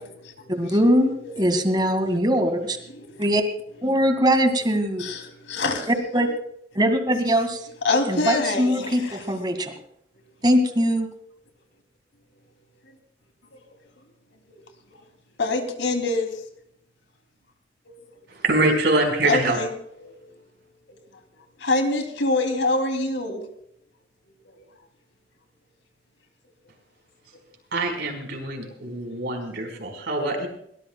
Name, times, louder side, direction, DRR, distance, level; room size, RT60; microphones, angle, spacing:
voice 1, 0.6-2.8 3.2-3.4 3.8-5.0 5.9-6.3 6.8-7.6 8.1-9.7 10.4-11.1, equal, 25° right, 6 dB, 2.0 m, -21 dB
voice 2, 5.0-5.9 7.8-9.2 15.4-16.3 19.2-19.7 20.0-20.2 21.6-23.4 24.4-24.5 28.6-28.7, left 2 dB, 80° left, 5 dB, 3.0 m, -25 dB
voice 3, 18.4-19.6 27.7-30.5, right 2 dB, 65° right, 3 dB, 4.8 m, -24 dB
22.5 x 18.5 x 2.3 m, 0.70 s
head